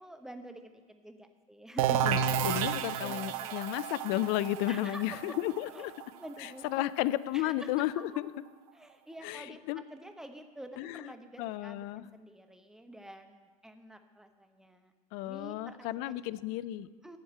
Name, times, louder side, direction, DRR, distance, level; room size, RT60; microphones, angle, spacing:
voice 1, 0.0-2.0 3.0-3.6 4.7-5.4 5.6-5.9 6.1-6.9 7.3-8.2 8.7-14.9 15.3-16.1 17.0-17.2, right 1 dB, 5° right, 7 dB, 0.9 m, -48 dB
sound 1, 1.8-7.4, right 8 dB, 65° right, 0.6 m, -32 dB
voice 2, 2.4-5.9 6.4-8.3 9.2-9.8 10.8-11.1 11.4-12.1 15.1-16.9, left 15 dB, 50° left, 17 dB, 0.4 m, -33 dB
8.1 x 7.1 x 8.6 m, 1.5 s
hypercardioid pair, 90°, 19 cm